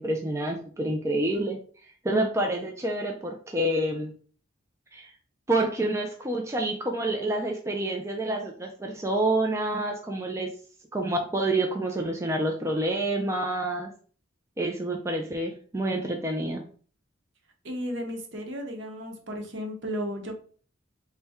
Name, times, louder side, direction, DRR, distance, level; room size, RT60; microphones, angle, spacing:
voice 1, 0.0-1.6 2.0-4.1 4.9-5.1 5.5-10.5 10.9-13.9 14.6-16.7, right 1 dB, 15° right, 2 dB, 0.3 m, -28 dB
voice 2, 17.6-20.3, equal, 65° right, 3 dB, 0.8 m, -34 dB
4.1 x 2.2 x 3.4 m, 0.44 s
head